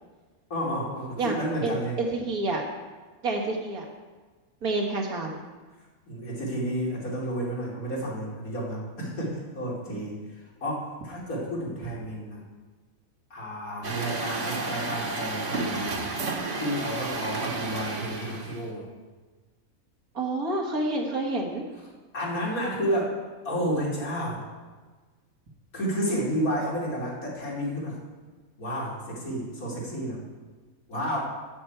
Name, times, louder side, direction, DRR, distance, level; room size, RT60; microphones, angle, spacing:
voice 1, 0.5-2.0 6.1-12.4 13.3-16.1 16.5-18.8 22.1-23.2 23.4-24.5 25.7-28.0 28.6-30.2 30.9-31.2, equal, 85° left, -4 dB, 3.3 m, -31 dB
voice 2, 1.2-2.6 3.2-3.9 4.6-5.4 20.1-21.6, right 2 dB, 85° right, 0 dB, 2.2 m, -28 dB
Truck, 13.8-18.7, right 3 dB, 60° right, 1.6 m, -32 dB
12.5 x 4.6 x 8.1 m, 1.3 s
omnidirectional pair, 1.5 m